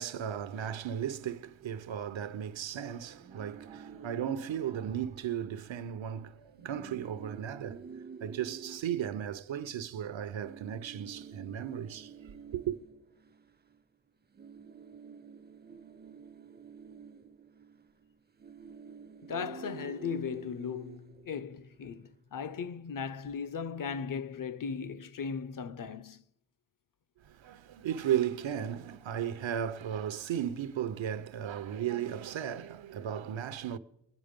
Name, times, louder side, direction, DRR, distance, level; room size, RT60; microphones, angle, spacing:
voice 1, 0.0-7.9 8.2-12.8 27.2-33.8, right 9 dB, 80° right, 0.7 m, -35 dB
sound 1, 3.2-5.7 6.0-6.2 6.5-9.9 10.4-14.0 14.2-21.8, right 6 dB, 25° right, 0.4 m, -50 dB
voice 2, 19.2-26.2, left 6 dB, 45° left, 0.5 m, -37 dB
21.5 x 9.6 x 5.1 m
wide cardioid pair, 120°, 45 cm